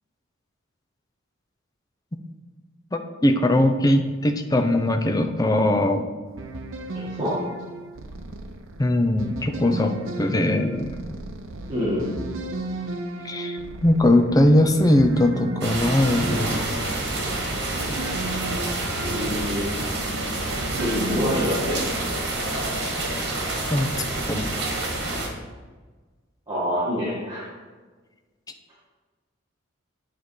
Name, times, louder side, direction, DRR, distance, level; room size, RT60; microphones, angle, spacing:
voice 1, 2.9-6.1 8.8-11.0 13.2-16.5 23.7-23.9 24.3-24.5, left 1 dB, 20° left, 7 dB, 0.5 m, -20 dB
sound 1, 6.3-21.7, right 2 dB, 80° right, 0.7 m, -35 dB
voice 2, 6.9-7.4 11.7-12.1 19.0-19.7 20.8-21.9 26.5-27.5, equal, 20° right, -9 dB, 1.8 m, -26 dB
sound 2, 15.6-25.3, right 2 dB, 55° right, 1.5 m, -28 dB
8.6 x 4.1 x 4.7 m, 1.4 s
head